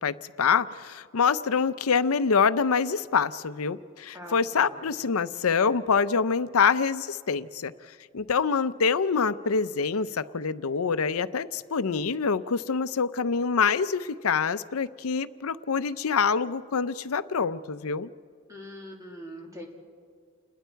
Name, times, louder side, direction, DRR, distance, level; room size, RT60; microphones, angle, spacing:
voice 1, 0.0-7.7 8.1-18.1, left 5 dB, 70° left, 14 dB, 0.6 m, -25 dB
voice 2, 4.1-4.9 18.5-19.7, equal, 15° right, 0 dB, 2.6 m, -42 dB
29.5 x 20.5 x 4.6 m, 2.1 s
head